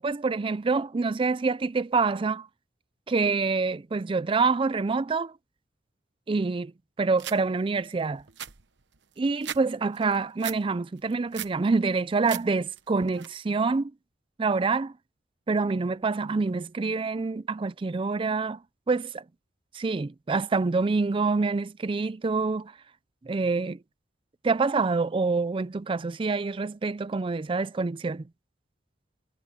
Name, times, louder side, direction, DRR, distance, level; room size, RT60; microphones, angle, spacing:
voice 1, 0.0-2.5 3.1-5.3 6.3-6.7 7.0-8.2 9.2-13.9 14.4-14.9 15.5-18.6 18.9-19.2 19.7-22.7 23.2-23.8 24.4-28.2, right 4 dB, 30° right, 0.4 m, -26 dB
sound 1, 7.2-7.4 7.9-8.0 8.2-9.6 9.9-10.6 11.0-11.6 12.0-12.4 12.8-13.3, right 10 dB, 65° right, 1.0 m, -37 dB
head